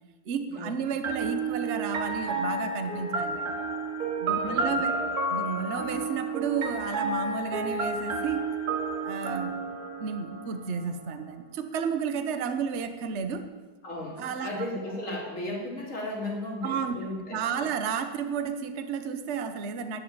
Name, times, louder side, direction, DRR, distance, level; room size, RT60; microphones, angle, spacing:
voice 1, 0.3-3.5 4.2-4.9 5.3-8.5 9.0-9.7 10.0-13.5 14.2-14.5 16.6-20.0, right 6 dB, 50° right, 8 dB, 1.1 m, -32 dB
sound 1, 1.0-10.8, right 3 dB, 65° right, 1.8 m, -31 dB
voice 2, 4.4-5.1 13.8-17.7, left 1 dB, 50° left, -2 dB, 3.3 m, -35 dB
11.0 x 8.5 x 8.8 m, 1.3 s
omnidirectional pair, 1.8 m